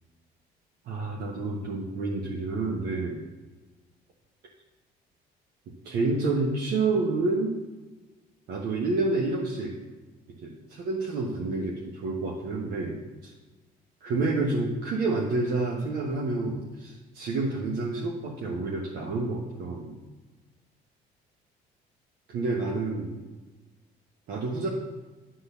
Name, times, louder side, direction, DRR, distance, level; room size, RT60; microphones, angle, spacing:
voice 1, 0.9-3.2 5.8-7.5 8.5-9.8 10.4-13.3 14.0-20.0 22.3-23.2 24.3-24.7, right 3 dB, 70° right, -2 dB, 1.2 m, -29 dB
10.0 x 3.9 x 6.8 m, 1.2 s
cardioid pair, 110°, 17 cm